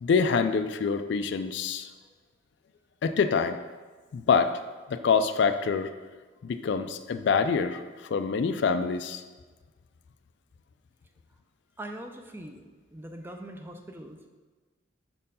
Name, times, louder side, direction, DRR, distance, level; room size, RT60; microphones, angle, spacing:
voice 1, 0.0-1.9 3.0-3.6 4.1-4.6 4.9-5.9 6.4-7.8 8.1-9.2, left 5 dB, 60° left, 10 dB, 0.3 m, -25 dB
voice 2, 11.8-12.6 12.9-14.2, right 1 dB, 10° right, 4 dB, 0.4 m, -41 dB
6.1 x 4.4 x 5.4 m, 1.4 s
head